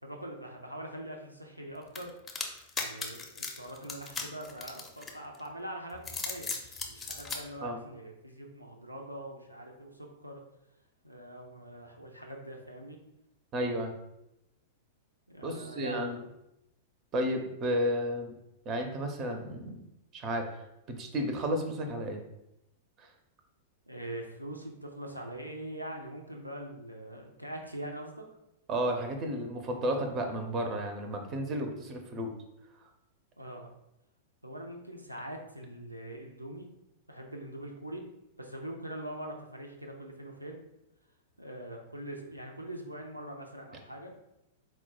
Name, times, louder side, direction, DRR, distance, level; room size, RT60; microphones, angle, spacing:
voice 1, 0.0-2.1 2.8-10.4 11.0-13.0 15.3-16.3 23.9-28.2 33.4-33.7 34.4-36.7 37.1-38.0 38.4-40.6 41.4-44.1, right 1 dB, 90° right, 2 dB, 0.5 m, -43 dB
sound 1, 2.0-5.4 5.9-7.4, left 4 dB, 20° left, 0.6 m, -37 dB
voice 2, 13.5-13.9 15.4-16.2 17.1-18.3 18.7-19.8 20.1-20.4 20.9-22.2 23.0-23.1 28.7-32.3, equal, 30° right, 4 dB, 0.6 m, -32 dB
4.3 x 2.2 x 4.2 m, 0.86 s
figure-of-eight pair, 95°, 0 cm